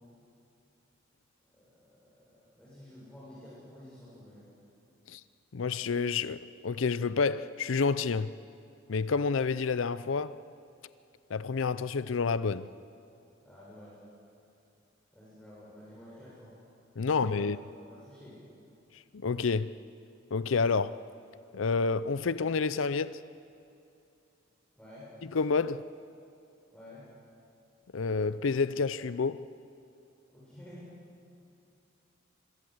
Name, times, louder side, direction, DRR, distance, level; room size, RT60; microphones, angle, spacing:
voice 1, 1.5-4.5 13.4-14.0 15.1-16.5 17.0-17.5 17.8-18.4 24.8-25.1 26.7-27.1 30.3-30.9, left 1 dB, 5° left, 7.2 m, -51 dB
voice 2, 5.5-8.3 8.9-10.4 11.3-12.7 17.0-17.6 19.1-19.7 20.3-21.0 21.5-23.2 25.3-25.9 27.9-29.4, left 4 dB, 80° left, 0.5 m, -29 dB
26.5 x 22.0 x 7.9 m
head